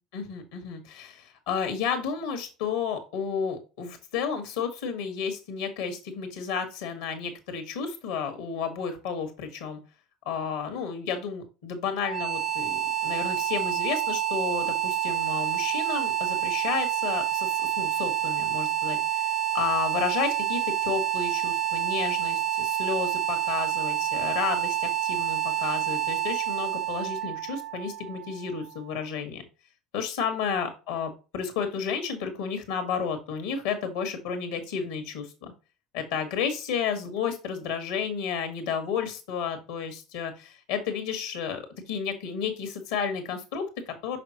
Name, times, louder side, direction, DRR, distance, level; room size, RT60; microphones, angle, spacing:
voice 1, 0.1-9.8 10.2-17.5 17.8-19.2 19.5-29.4 29.9-35.5 35.9-44.2, left 6 dB, 75° left, 7 dB, 1.5 m, -32 dB
sound 1, 12.0-28.9, right 10 dB, 45° right, 0.7 m, -28 dB
5.8 x 5.6 x 2.9 m, 0.31 s
hypercardioid pair, 65°, 0 cm